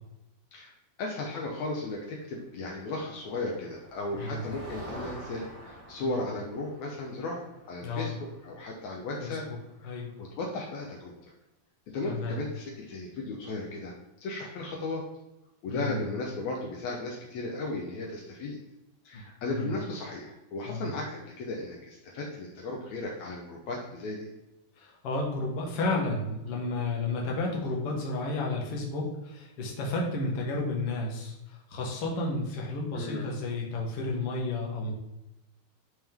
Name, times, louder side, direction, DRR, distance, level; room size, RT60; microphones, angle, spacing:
voice 1, 1.0-8.1 8.4-9.5 9.8-9.9 10.2-11.1 11.9-13.9 14.2-15.0 15.6-18.6 19.0-24.3 32.9-33.3, left 2 dB, 80° left, -1 dB, 1.6 m, -35 dB
Motor vehicle (road), 2.8-10.5, equal, 5° right, 1.8 m, -48 dB
voice 2, 7.8-8.1 9.2-9.6 9.8-10.1 12.0-12.4 15.7-16.0 19.1-19.2 19.5-19.7 20.6-20.9 24.8-34.9, left 2 dB, 55° left, -1 dB, 1.7 m, -32 dB
11.0 x 3.7 x 3.5 m, 0.94 s
omnidirectional pair, 4.4 m